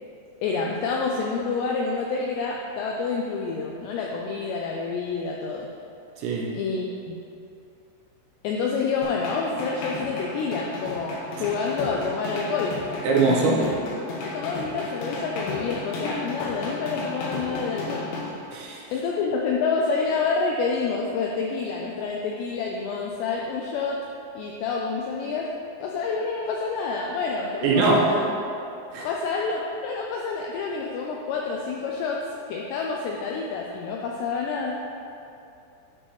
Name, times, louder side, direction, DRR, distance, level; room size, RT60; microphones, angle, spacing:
voice 1, 0.4-5.7 6.5-7.2 8.4-12.8 13.4-13.7 14.2-18.1 18.5-18.6 18.9-24.0 24.4-25.5 25.8-28.2 29.0-32.2 32.5-34.7, left 4 dB, 90° left, -1 dB, 2.4 m, -28 dB
voice 2, 6.2-6.5 13.0-13.7 18.5-18.8 27.6-28.1 28.9-29.1, right 3 dB, 75° right, -3 dB, 2.7 m, -22 dB
sound 1, 9.0-18.2, left 2 dB, 75° left, 2.0 m, -33 dB
11.0 x 6.2 x 3.1 m, 2.7 s
omnidirectional pair, 5.5 m